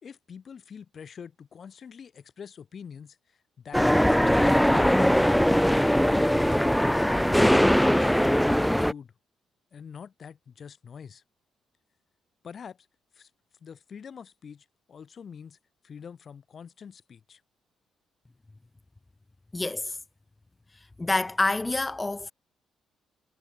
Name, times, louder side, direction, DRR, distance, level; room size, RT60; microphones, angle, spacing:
voice 1, 0.0-5.2 6.1-9.1 9.7-11.2 12.4-12.9 13.1-13.3 13.6-15.6 15.8-17.4, left 7 dB, 50° left, 3.2 m, -45 dB
sound 1, 3.7-8.9, equal, ahead, 0.3 m, -21 dB
voice 2, 19.5-20.0 21.0-22.3, left 2 dB, 15° left, 1.6 m, -27 dB
cardioid pair, 90°, 0 cm